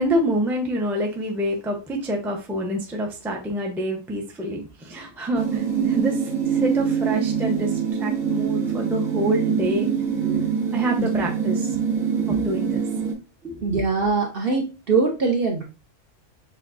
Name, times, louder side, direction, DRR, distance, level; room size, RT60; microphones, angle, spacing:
voice 1, 0.0-7.7 8.0-9.9 10.7-11.8 12.3-12.8 13.4-13.8, equal, 5° right, 0.3 m, -27 dB
sound 1, 5.3-13.1, right 7 dB, 75° right, 1.6 m, -24 dB
voice 2, 13.6-15.6, right 4 dB, 55° right, 0.7 m, -23 dB
6.5 x 2.3 x 2.5 m
omnidirectional pair, 1.5 m